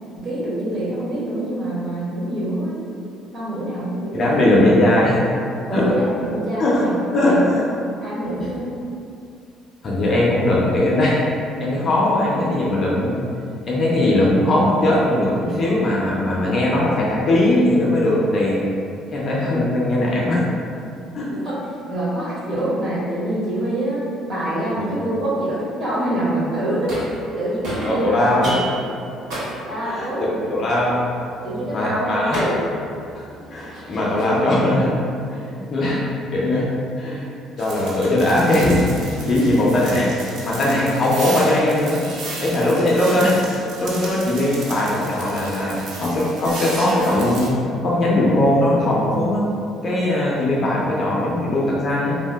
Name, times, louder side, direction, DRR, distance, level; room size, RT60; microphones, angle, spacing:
voice 1, 0.2-2.8 3.3-4.5 5.7-7.5 8.0-8.8 21.3-21.6 21.9-24.0 24.3-28.6 29.6-30.5 31.4-32.5, right 1 dB, 35° right, -8 dB, 0.8 m, -25 dB
voice 2, 4.1-5.2 5.7-5.9 6.6-6.8 7.1-7.7 9.8-11.2 11.6-13.3 13.6-18.7 19.1-20.4 21.1-21.3 24.8-24.9 27.9-28.5 29.8-30.1 30.5-31.1 31.7-32.4 33.1-33.2 33.5-35.0 35.3-36.7 37.0-37.3 37.6-42.0 42.4-43.4 43.8-49.4 49.8-52.1, left 1 dB, 30° left, -5 dB, 0.4 m, -19 dB
sound 1, 26.9-27.4 27.6-34.6, right 1 dB, 70° right, 1.3 m, -32 dB
sound 2, 37.6-47.5, right 2 dB, 55° right, 0.5 m, -34 dB
2.8 x 2.0 x 3.3 m, 2.4 s
cardioid pair, 170°, 0 cm